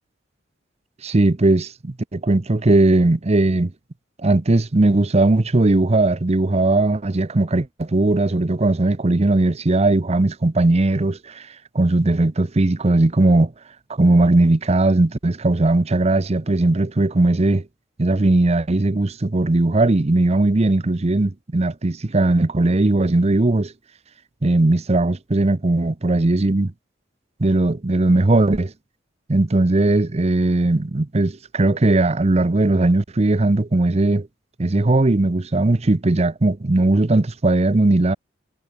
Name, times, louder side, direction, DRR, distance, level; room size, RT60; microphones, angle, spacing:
voice 1, 1.0-3.7 4.2-11.5 11.7-13.5 13.9-17.6 18.0-23.7 24.4-26.7 27.4-28.7 29.3-34.3 34.6-38.2, right 2 dB, 35° right, 0.7 m, -18 dB
head